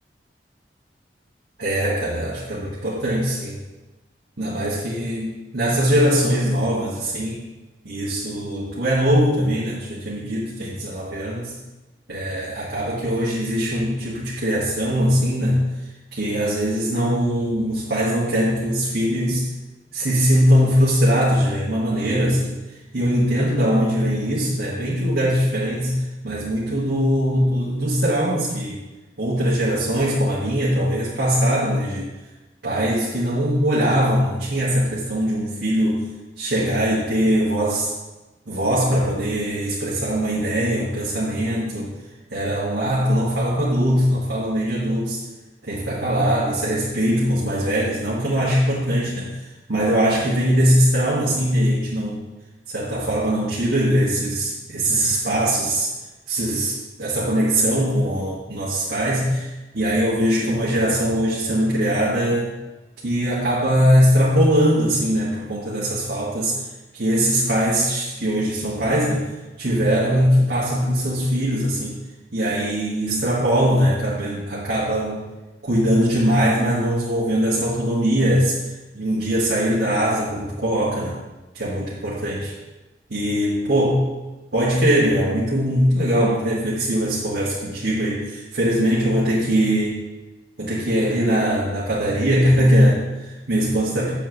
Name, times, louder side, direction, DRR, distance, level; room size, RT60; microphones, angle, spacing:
voice 1, 1.6-3.6 4.4-7.4 7.8-11.5 12.1-15.6 16.1-19.5 19.9-22.6 22.9-26.0 26.2-28.8 29.2-32.1 32.6-36.1 36.4-37.9 38.5-41.9 42.3-45.2 45.6-49.3 49.7-52.2 52.7-55.9 56.3-59.5 59.7-62.5 63.0-66.6 66.9-69.3 69.6-72.0 72.3-75.2 75.6-78.6 78.9-81.2 81.5-82.5 83.1-84.1 84.5-90.0 90.6-94.1, equal, 80° right, -8 dB, 1.6 m, -21 dB
7.8 x 7.4 x 3.0 m, 1.1 s
head